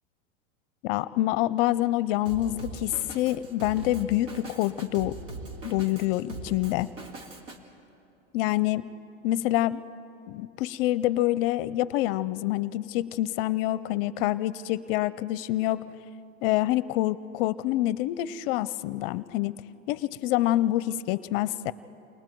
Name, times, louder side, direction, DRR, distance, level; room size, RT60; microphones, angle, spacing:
voice 1, 0.8-5.1 5.6-6.9 8.3-8.9 9.2-9.8 10.3-15.8 16.4-19.5 19.9-21.7, left 15 dB, 45° left, 17 dB, 0.5 m, -26 dB
Drum kit, 2.3-7.6, right 2 dB, 80° right, 2.6 m, -41 dB
29.0 x 21.5 x 4.5 m, 2.8 s
hypercardioid pair, 125°, 39 cm